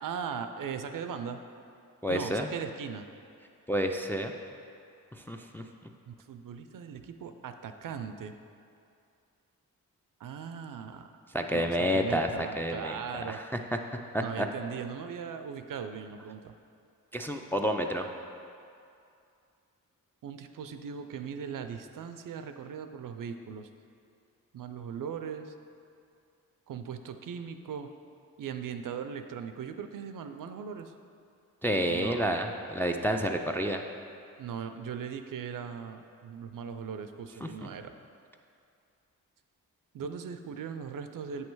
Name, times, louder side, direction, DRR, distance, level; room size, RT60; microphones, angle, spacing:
voice 1, 0.0-1.4 2.1-3.1 6.1-8.3 10.2-11.1 11.5-13.4 14.2-16.5 20.2-23.7 24.5-25.5 26.7-27.9 28.4-30.9 31.9-32.3 34.4-37.9 39.9-41.5, right 7 dB, 60° right, 8 dB, 0.5 m, -39 dB
voice 2, 2.0-2.5 3.7-4.3 5.2-5.6 11.3-12.3 12.6-13.0 13.3-13.4 14.1-14.5 17.1-18.1 31.6-33.8 37.4-37.7, equal, 5° left, 3 dB, 0.3 m, -29 dB
7.9 x 3.2 x 4.6 m, 2.5 s
cardioid pair, 55°, 37 cm